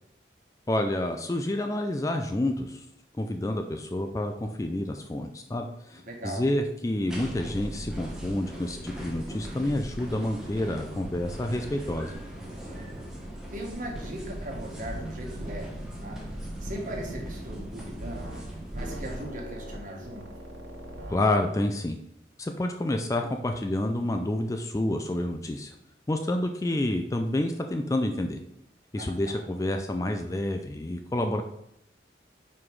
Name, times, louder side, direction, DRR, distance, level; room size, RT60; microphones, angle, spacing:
voice 1, 0.7-2.9 3.2-4.3 4.6-12.1 21.1-22.0 22.4-25.7 26.1-28.4 28.9-31.4, left 1 dB, 20° left, 5 dB, 0.3 m, -29 dB
voice 2, 5.9-6.5 12.7-13.0 13.5-15.7 16.0-16.2 16.6-18.4 18.7-20.3 29.0-29.4, right 1 dB, 45° right, 0 dB, 1.5 m, -39 dB
sound 1, 7.1-19.2, right 1 dB, 5° right, 1.1 m, -39 dB
sound 2, 14.8-15.1 15.3-15.6 16.6-17.3 18.0-18.5 18.7-21.2, right 1 dB, 75° right, 1.5 m, -41 dB
5.6 x 4.9 x 4.7 m, 0.79 s
head